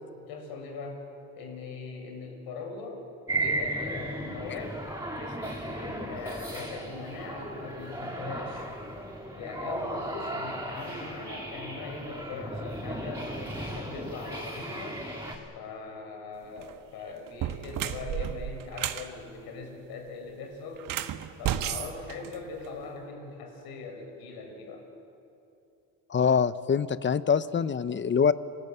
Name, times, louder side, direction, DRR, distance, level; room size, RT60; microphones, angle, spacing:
voice 1, 0.1-1.1 1.3-3.1 3.4-4.8 5.1-8.7 9.3-15.0 15.5-20.9 21.4-24.8, left 3 dB, 70° left, 3 dB, 6.7 m, -40 dB
sound 1, 3.3-15.4, right 1 dB, 5° right, 6.8 m, -35 dB
sound 2, 16.5-16.7 17.3-19.1 20.8-22.8, right 10 dB, 55° right, 1.6 m, -33 dB
voice 2, 26.1-28.3, left 6 dB, 30° left, 15 dB, 0.9 m, -24 dB
29.0 x 19.5 x 8.2 m, 2.7 s
supercardioid pair, 85°, 38 cm